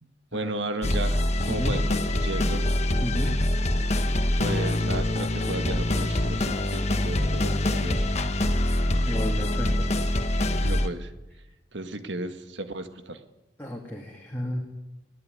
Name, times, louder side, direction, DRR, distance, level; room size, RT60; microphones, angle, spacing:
voice 1, 0.0-2.7 4.4-8.0 10.6-11.1 11.7-13.2, right 2 dB, 75° right, 8 dB, 1.8 m, -34 dB
sound 1, 0.8-10.9, left 1 dB, 35° left, 1.3 m, -25 dB
voice 2, 1.5-1.8 3.0-3.4 9.1-9.7 13.6-14.6, left 1 dB, 10° left, -1 dB, 2.5 m, -32 dB
21.0 x 17.0 x 9.5 m, 1.0 s
head